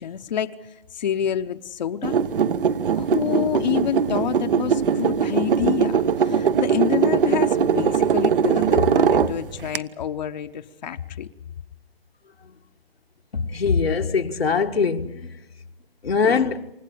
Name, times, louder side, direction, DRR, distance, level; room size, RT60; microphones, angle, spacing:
voice 1, 0.0-2.2 2.9-11.3, left 9 dB, 45° left, 0.9 m, -28 dB
sound 1, 2.0-9.8, right 7 dB, 65° right, 1.0 m, -21 dB
voice 2, 13.3-15.3 16.0-16.7, left 5 dB, 85° left, 1.6 m, -22 dB
28.5 x 15.5 x 8.6 m
hypercardioid pair, 150°, 30 cm